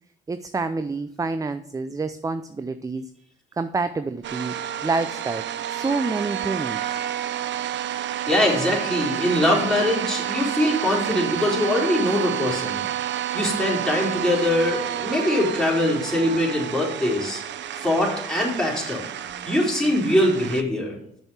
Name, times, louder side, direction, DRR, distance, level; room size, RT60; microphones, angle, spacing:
voice 1, 0.3-3.1 3.6-4.5 4.8-6.8, right 3 dB, 15° right, 11 dB, 0.5 m, -28 dB
sound 1, 4.2-20.6, right 11 dB, 65° right, 0.6 m, -30 dB
voice 2, 8.3-12.9 13.3-17.4 17.8-19.0 19.5-20.9, left 1 dB, 5° left, -3 dB, 3.9 m, -22 dB
7.1 x 6.2 x 7.1 m, 0.71 s
cardioid pair, 90°, 20 cm